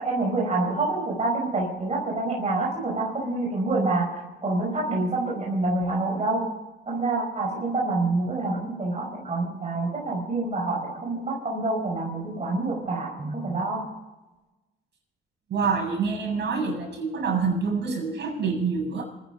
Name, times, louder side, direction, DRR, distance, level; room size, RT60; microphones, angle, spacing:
voice 1, 0.0-6.5 6.9-13.9, right 2 dB, 35° right, -2 dB, 5.1 m, -27 dB
voice 2, 15.5-19.0, right 5 dB, 60° right, -1 dB, 7.9 m, -26 dB
27.0 x 10.5 x 5.0 m, 1.1 s
cardioid pair, 90°, 20 cm